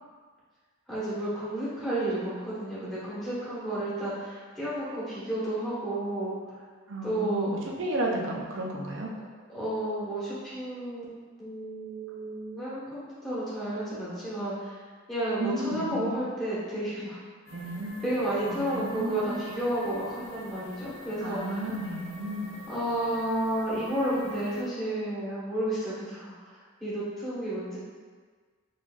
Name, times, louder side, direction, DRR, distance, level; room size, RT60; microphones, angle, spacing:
voice 1, 0.9-6.3 7.0-7.5 9.5-11.0 11.4-14.8 15.1-17.2 18.0-21.6 22.7-26.3 26.8-27.8, right 1 dB, ahead, -11 dB, 1.2 m, -31 dB
voice 2, 6.9-9.1 15.4-16.2 17.5-18.0 18.5-19.4 21.2-22.5, right 1 dB, 60° right, -1 dB, 0.6 m, -33 dB
sound 1, 17.5-24.6, left 1 dB, 80° left, 0.7 m, -47 dB
4.0 x 3.2 x 2.4 m, 1.5 s
head